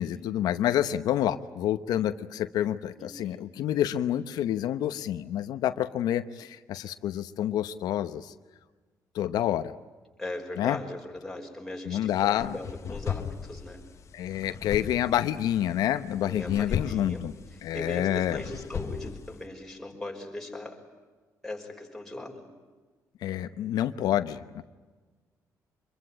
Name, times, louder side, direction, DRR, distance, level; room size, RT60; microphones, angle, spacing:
voice 1, 0.0-8.3 9.1-9.8 10.6-10.8 11.8-12.6 14.1-17.3 17.6-18.4 23.2-24.6, left 11 dB, 85° left, 10 dB, 0.9 m, -28 dB
voice 2, 3.0-3.4 10.2-13.8 16.2-17.2 17.5-20.8 21.4-22.4, left 1 dB, 5° left, 0 dB, 5.6 m, -39 dB
sound 1, 12.1-19.4, left 7 dB, 50° left, 1.2 m, -37 dB
25.5 x 22.5 x 9.9 m, 1.3 s
cardioid pair, 125°, 7 cm